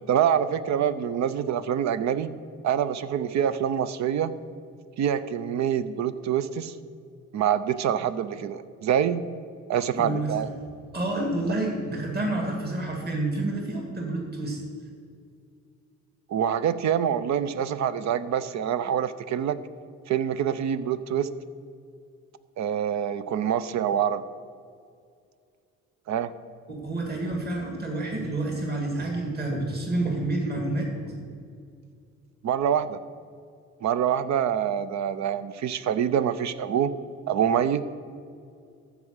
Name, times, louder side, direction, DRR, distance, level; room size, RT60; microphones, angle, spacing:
voice 1, 0.1-2.3 2.6-4.3 5.0-6.7 7.3-9.2 9.7-10.5 16.3-19.6 20.1-21.3 22.6-24.2 26.1-26.3 32.4-33.0 33.8-36.9 37.3-37.8, right 9 dB, 65° right, 14 dB, 0.6 m, -25 dB
voice 2, 10.0-10.5 10.9-14.6 26.7-31.2, right 2 dB, 30° right, 0 dB, 2.2 m, -29 dB
14.0 x 4.9 x 6.4 m, 2.3 s
cardioid pair, 90°, 30 cm